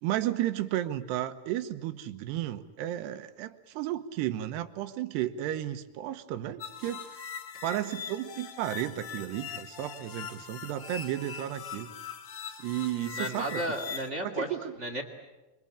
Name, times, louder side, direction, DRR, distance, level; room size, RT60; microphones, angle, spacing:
voice 1, 0.0-7.2 7.6-11.9 12.6-13.6 14.2-14.7, right 13 dB, 90° right, 9 dB, 3.2 m, -33 dB
sound 1, 6.6-14.1, left 7 dB, 75° left, 1.2 m, -41 dB
voice 2, 12.9-14.5 14.8-15.0, right 1 dB, 25° right, 6 dB, 1.6 m, -33 dB
27.5 x 24.0 x 8.8 m, 1.1 s
omnidirectional pair, 4.7 m